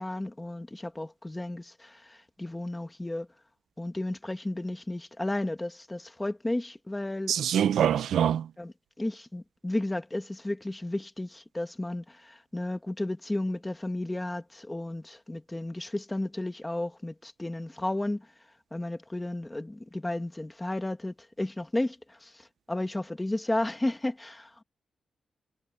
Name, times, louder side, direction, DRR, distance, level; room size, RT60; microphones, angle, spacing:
voice 1, 0.0-3.3 3.8-7.3 8.6-18.2 18.7-24.5, left 1 dB, 10° left, 1.6 m, -33 dB
voice 2, 7.3-8.5, right 9 dB, 80° right, 0.6 m, -24 dB
wide cardioid pair, 175°, 0 cm